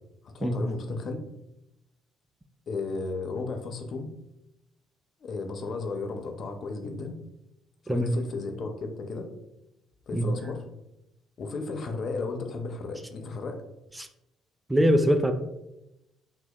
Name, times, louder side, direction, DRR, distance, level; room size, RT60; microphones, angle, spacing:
voice 1, 0.2-1.2 2.7-4.1 5.2-7.2 7.8-9.3 10.1-10.6 11.4-13.6, left 3 dB, 50° left, 5 dB, 0.4 m, -34 dB
voice 2, 14.7-15.3, equal, 15° right, 7 dB, 0.3 m, -23 dB
4.0 x 2.0 x 2.2 m, 0.90 s
hypercardioid pair, 50°, 0 cm